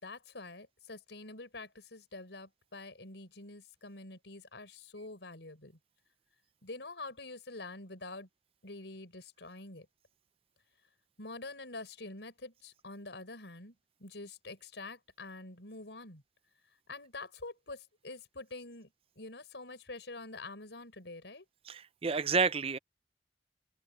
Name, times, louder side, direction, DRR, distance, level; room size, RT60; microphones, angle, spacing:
voice 1, 0.0-5.8 6.6-8.3 8.6-9.9 11.2-13.7 14.0-16.2 16.9-18.9 19.2-21.4, left 2 dB, 90° left, 4.8 m, -46 dB
voice 2, 21.7-22.8, right 4 dB, 35° right, 0.5 m, -30 dB
open air
head